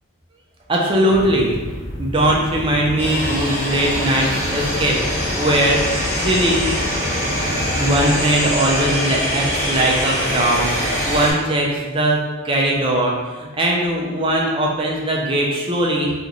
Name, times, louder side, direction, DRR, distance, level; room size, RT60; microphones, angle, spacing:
voice 1, 0.7-1.5 2.0-5.0 5.4-5.8 6.2-6.7 7.7-16.1, right 1 dB, 25° right, -1 dB, 0.5 m, -20 dB
sound 1, 1.1-11.2, equal, 65° left, 0.6 m, -31 dB
sound 2, 3.0-11.3, equal, 10° left, 1.1 m, -23 dB
2.9 x 2.5 x 3.8 m, 1.3 s
head